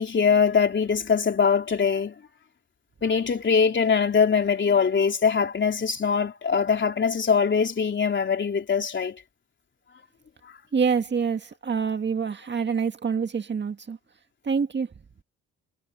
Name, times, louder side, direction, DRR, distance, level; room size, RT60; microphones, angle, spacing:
voice 1, 0.0-2.1 3.0-9.2, left 6 dB, 40° left, 3.6 m, -22 dB
voice 2, 10.7-14.0 14.4-14.9, right 6 dB, 35° right, 1.8 m, -26 dB
cardioid pair, 90°, 30 cm